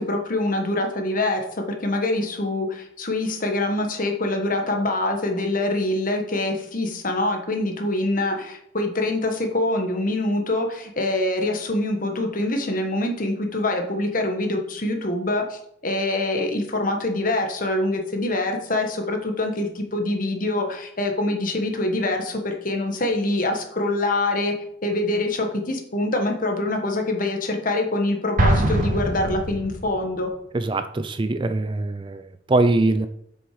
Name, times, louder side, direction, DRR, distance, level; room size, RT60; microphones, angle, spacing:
voice 1, 0.0-24.6 24.8-30.3, left 2 dB, 45° left, 4 dB, 1.4 m, -25 dB
Explosion, 28.4-30.1, right 1 dB, 45° right, 1.4 m, -22 dB
voice 2, 30.5-33.1, right 2 dB, 25° right, 10 dB, 0.4 m, -22 dB
7.9 x 6.3 x 4.9 m, 0.72 s
head